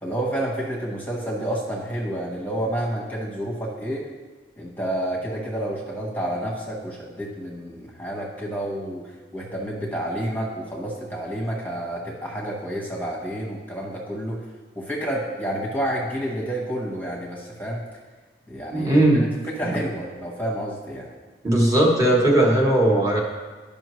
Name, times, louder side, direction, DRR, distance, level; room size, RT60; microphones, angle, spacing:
voice 1, 0.0-4.1 4.6-14.4 14.8-17.8 18.5-19.0 19.5-21.1, right 1 dB, 10° left, -3 dB, 1.0 m, -29 dB
voice 2, 18.7-19.3 21.4-23.2, right 1 dB, 20° right, -3 dB, 1.2 m, -18 dB
11.5 x 5.3 x 3.1 m, 1.3 s
head